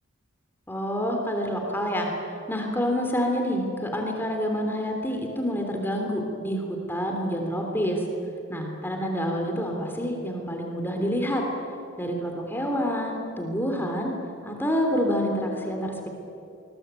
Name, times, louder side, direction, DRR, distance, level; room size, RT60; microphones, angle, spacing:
voice 1, 0.7-2.1 2.5-8.0 8.5-11.4 12.0-14.1 14.4-16.1, equal, 10° left, 2 dB, 3.2 m, -27 dB
26.5 x 21.5 x 9.1 m, 2.7 s
head